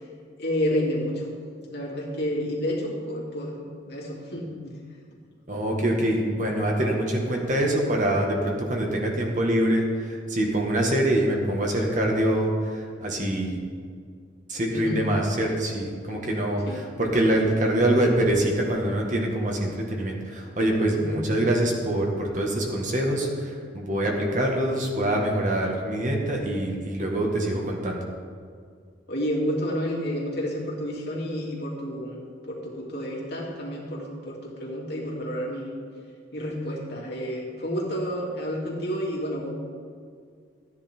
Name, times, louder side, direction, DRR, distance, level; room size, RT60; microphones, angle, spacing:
voice 1, 0.4-1.3 1.7-4.8 14.7-15.1 16.7-16.9 20.9-21.2 29.1-32.2 32.5-35.7 36.3-39.5, equal, 55° left, -3 dB, 2.7 m, -30 dB
voice 2, 5.5-12.5 13.0-13.6 14.5-28.0, right 1 dB, 40° right, 0 dB, 1.7 m, -24 dB
13.5 x 10.0 x 4.5 m, 2.1 s
head